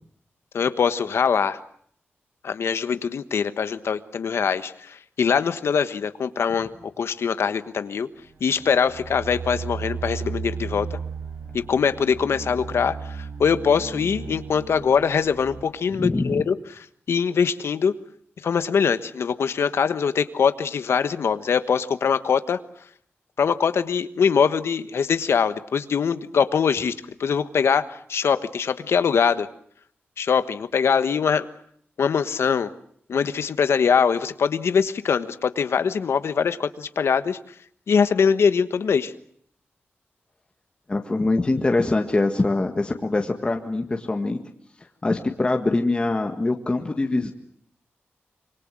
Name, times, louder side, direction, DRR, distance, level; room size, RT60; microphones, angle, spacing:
voice 1, 0.5-1.6 2.4-6.7 7.0-8.1 8.4-11.0 11.5-16.5 17.1-17.9 18.4-22.6 23.4-26.9 27.2-29.5 30.2-31.5 32.0-32.7 33.1-37.4 37.9-39.1, left 6 dB, 80° left, 11 dB, 1.2 m, -22 dB
sound 1, 8.2-15.6, right 5 dB, 65° right, 7.2 m, -35 dB
voice 2, 15.9-16.4 40.9-44.4 45.0-47.3, left 2 dB, 25° left, 3 dB, 1.7 m, -23 dB
26.0 x 24.5 x 7.6 m, 0.63 s
wide cardioid pair, 155°, 4 cm